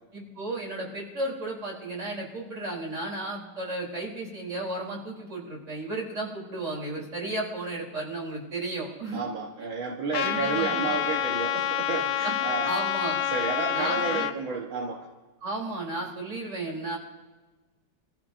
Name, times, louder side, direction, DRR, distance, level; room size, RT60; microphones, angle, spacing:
voice 1, 0.1-9.2 10.2-10.9 12.2-12.4 12.6-13.2 13.7-14.3 15.4-17.0, right 2 dB, 35° right, -3 dB, 3.9 m, -34 dB
voice 2, 9.1-12.7 13.3-15.1, right 4 dB, 70° right, -1 dB, 2.0 m, -31 dB
Trumpet, 10.1-14.3, left 10 dB, 75° left, 1.4 m, -28 dB
26.0 x 15.0 x 2.6 m, 1.2 s
omnidirectional pair, 2.3 m